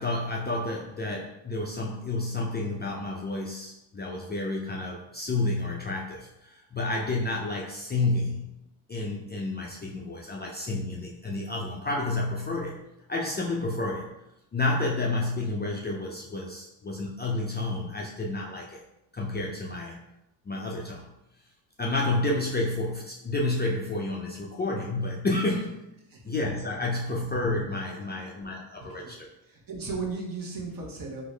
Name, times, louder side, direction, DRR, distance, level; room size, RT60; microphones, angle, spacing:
voice 1, 0.0-8.5 8.9-12.8 13.1-14.1 14.5-18.8 19.1-20.0 20.5-21.1 21.8-25.8 26.2-29.3, left 2 dB, 20° left, -2 dB, 0.4 m, -30 dB
voice 2, 28.8-29.1 29.4-31.2, right 4 dB, 45° right, -1 dB, 1.0 m, -36 dB
3.6 x 2.1 x 3.2 m, 0.87 s
supercardioid pair, 70°, 47 cm